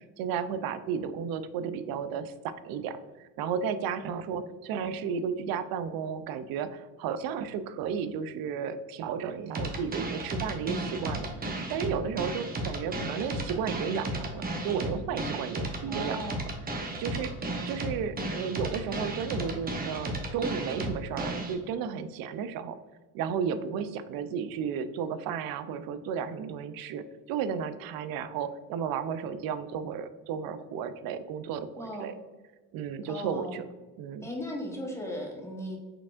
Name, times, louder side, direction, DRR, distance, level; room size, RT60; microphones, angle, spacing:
voice 1, 0.0-16.4 16.8-17.3 17.7-22.8 23.1-32.1 32.7-33.6 34.0-34.3, right 7 dB, 65° right, 12 dB, 0.5 m, -33 dB
sound 1, 9.5-21.5, right 2 dB, 25° right, 0.8 m, -34 dB
voice 2, 15.9-16.4 31.8-32.1 33.1-33.6 34.2-35.8, equal, 5° left, -1 dB, 1.0 m, -37 dB
4.6 x 3.6 x 2.5 m, 1.3 s
supercardioid pair, 95°, 39 cm